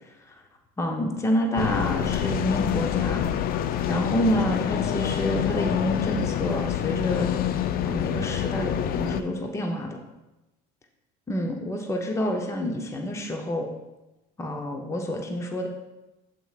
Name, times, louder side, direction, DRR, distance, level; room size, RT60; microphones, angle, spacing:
voice 1, 0.8-3.2 3.9-7.3 7.8-10.0 11.3-13.7 14.4-15.7, equal, 15° left, 2 dB, 0.7 m, -28 dB
sound 1, 1.6-9.2, left 10 dB, 50° left, 0.4 m, -26 dB
8.9 x 7.5 x 2.4 m, 1.0 s
supercardioid pair, 110°, 20 cm